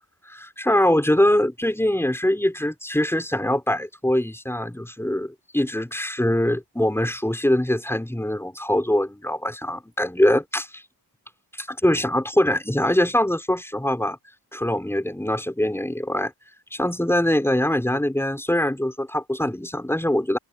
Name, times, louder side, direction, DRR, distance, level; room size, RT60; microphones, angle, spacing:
voice 1, 0.3-10.8 11.6-14.2 14.5-16.3 16.7-20.4, left 1 dB, 5° left, 5.5 m, -23 dB
open air
wide cardioid pair, 125°, 43 cm